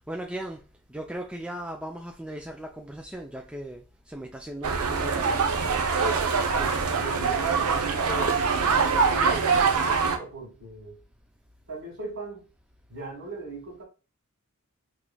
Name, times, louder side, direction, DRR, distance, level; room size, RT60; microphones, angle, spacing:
voice 1, 0.1-0.6 0.9-5.4, right 1 dB, 5° right, 0.3 m, -37 dB
sound 1, 4.6-10.2, right 5 dB, 75° right, 0.6 m, -24 dB
voice 2, 6.3-11.0 11.7-12.5 12.9-13.8, right 2 dB, 55° right, 1.7 m, -39 dB
4.7 x 3.0 x 2.3 m
head